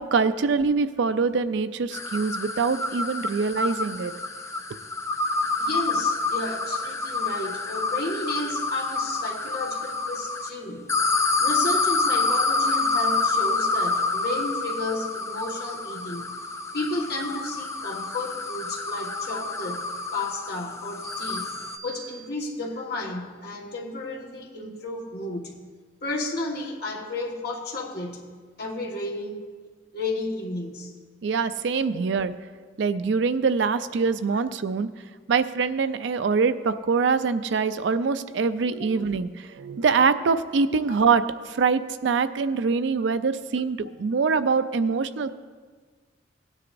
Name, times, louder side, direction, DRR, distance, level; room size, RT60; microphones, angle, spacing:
voice 1, 0.0-4.1 31.2-32.3 32.8-34.9 35.3-45.3, right 5 dB, 70° right, 12 dB, 0.4 m, -24 dB
sound 1, 1.9-10.5 10.9-21.8, left 3 dB, 15° left, 0.5 m, -28 dB
voice 2, 5.6-16.4 16.7-21.6 21.8-25.6 26.0-29.4 29.9-31.0 31.9-32.0 34.3-34.4 40.9-41.0, left 2 dB, 55° left, -1 dB, 1.5 m, -33 dB
sound 2, 21.0-22.8, right 5 dB, ahead, 3.7 m, -44 dB
17.0 x 9.7 x 2.6 m, 1.5 s
head